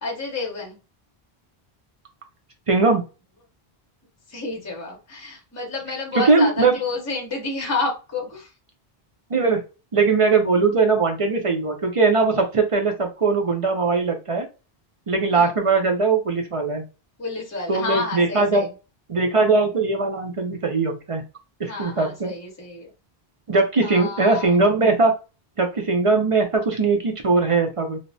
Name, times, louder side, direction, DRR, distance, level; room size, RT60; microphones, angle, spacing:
voice 1, 0.0-0.8 4.3-8.5 15.3-15.5 17.2-18.7 21.7-22.9 23.8-24.6, left 3 dB, 20° left, 0 dB, 0.7 m, -30 dB
voice 2, 2.7-3.0 6.1-6.8 9.3-9.6 9.9-14.5 15.1-16.8 17.7-18.7 19.1-21.2 21.6-22.3 23.5-25.1 25.6-28.0, right 4 dB, 40° right, 3 dB, 0.5 m, -20 dB
3.2 x 2.0 x 2.6 m, 0.30 s
omnidirectional pair, 1.0 m